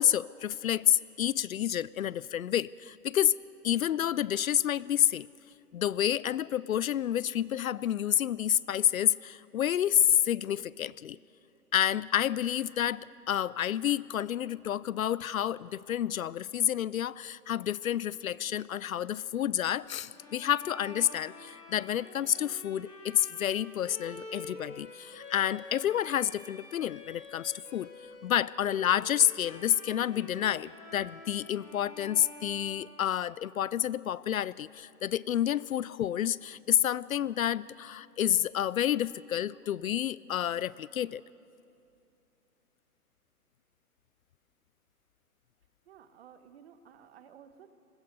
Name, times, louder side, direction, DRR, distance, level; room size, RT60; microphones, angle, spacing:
voice 1, 0.0-3.4 3.6-5.3 5.7-11.2 11.7-27.9 28.2-41.2, left 10 dB, 65° left, 21 dB, 0.5 m, -29 dB
sound 1, 17.9-33.4, left 3 dB, 20° right, 6.4 m, -71 dB
Bowed string instrument, 20.1-33.6, left 2 dB, 85° left, 5.3 m, -48 dB
voice 2, 45.9-47.7, right 8 dB, 40° right, 10 dB, 1.3 m, -54 dB
29.0 x 21.5 x 5.4 m, 2.6 s
hypercardioid pair, 150°, 46 cm